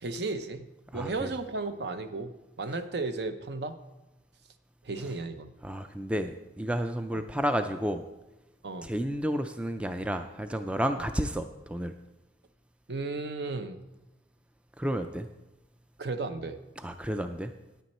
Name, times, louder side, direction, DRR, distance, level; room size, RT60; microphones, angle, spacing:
voice 1, 0.0-2.3 2.6-3.8 4.8-5.5 8.6-8.9 12.9-13.8 16.0-16.6, right 3 dB, 60° right, 9 dB, 0.7 m, -34 dB
voice 2, 0.9-1.3 5.6-8.0 8.8-11.9 14.8-15.3 16.8-17.5, equal, 5° right, 8 dB, 0.3 m, -31 dB
9.8 x 9.3 x 4.2 m, 0.99 s
head